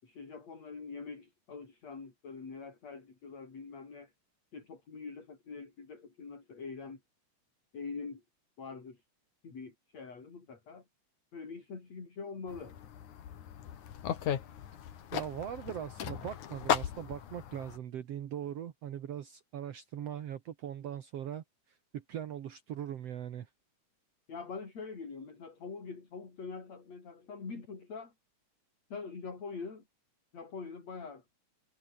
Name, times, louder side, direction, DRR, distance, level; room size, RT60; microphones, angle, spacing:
voice 1, 0.0-4.1 4.5-7.0 7.7-8.2 8.6-9.0 9.4-10.8 11.3-12.7 24.3-28.1 28.9-29.8 30.3-31.2, left 4 dB, 60° left, 6.1 m, -44 dB
sound 1, 12.5-17.8, left 9 dB, 90° left, 3.4 m, -37 dB
voice 2, 15.1-21.4 21.9-23.5, right 10 dB, 60° right, 2.3 m, -40 dB
omnidirectional pair, 3.4 m